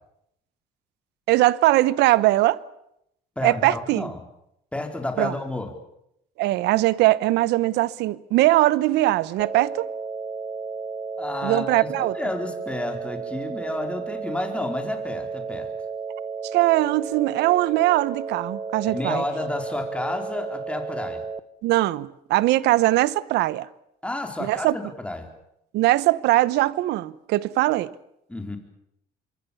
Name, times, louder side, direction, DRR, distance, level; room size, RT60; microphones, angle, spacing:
voice 1, 1.3-2.6 3.4-4.1 5.2-5.3 6.4-9.9 11.4-12.2 16.5-19.2 21.6-23.7 24.4-24.8 25.7-27.9, right 17 dB, 85° right, 0.9 m, -21 dB
voice 2, 3.4-4.2 4.7-5.7 11.2-15.7 18.9-21.2 24.0-25.3 28.3-28.6, left 2 dB, 5° left, 4.4 m, -31 dB
sound 1, 9.4-21.4, right 5 dB, 25° right, 1.1 m, -33 dB
25.5 x 23.5 x 7.1 m
cardioid pair, 110°, 17 cm